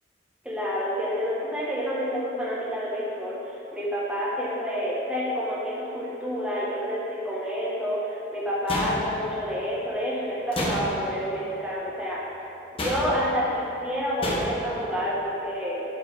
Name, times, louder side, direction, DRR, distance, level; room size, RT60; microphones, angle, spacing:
voice 1, 0.4-12.4 12.8-15.8, equal, 5° right, -8 dB, 1.4 m, -29 dB
sound 1, 8.7-9.4 10.5-11.2 12.8-13.3 14.2-14.7, left 1 dB, 30° left, 1.0 m, -30 dB
12.0 x 4.7 x 3.6 m, 3.0 s
head